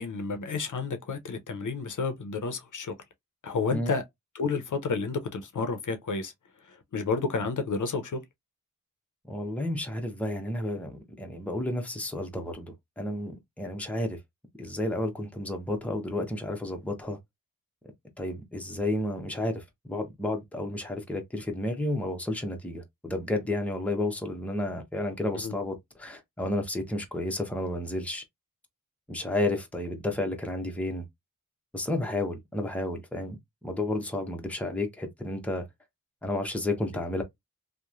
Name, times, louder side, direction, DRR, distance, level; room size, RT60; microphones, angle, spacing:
voice 1, 0.0-2.9 3.4-4.0 4.3-6.3 6.9-8.2 25.4-25.5, left 4 dB, 60° left, 0.6 m, -30 dB
voice 2, 9.3-14.2 14.6-17.2 18.2-28.2 29.1-31.0 31.7-33.4 33.6-35.6 36.2-37.2, left 1 dB, 5° left, 0.7 m, -31 dB
2.9 x 2.1 x 2.4 m
wide cardioid pair, 65°, 34 cm